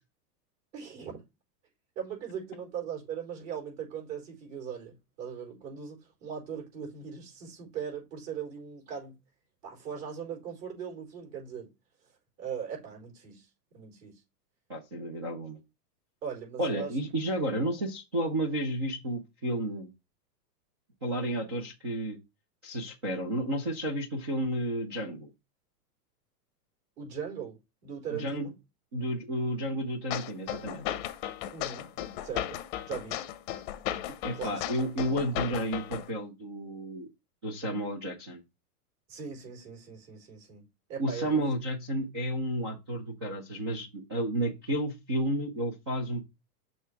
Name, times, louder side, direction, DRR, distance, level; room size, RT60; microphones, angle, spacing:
voice 1, 0.7-1.2 2.0-9.2 9.6-11.7 12.4-13.5 13.7-14.2 16.2-16.9 27.0-27.6 27.8-28.5 31.5-31.9 32.2-32.6 32.8-33.2 34.3-34.6 39.1-41.5, right 7 dB, 50° right, 4.4 m, -39 dB
voice 2, 14.7-15.6 16.6-19.9 21.0-22.2 22.6-25.3 28.1-28.5 28.9-30.9 34.2-37.1 37.4-38.4 41.0-46.2, right 1 dB, 20° right, 0.3 m, -32 dB
sound 1, 30.1-36.1, left 12 dB, 30° left, 0.7 m, -35 dB
6.5 x 3.3 x 5.6 m
supercardioid pair, 150°, 49 cm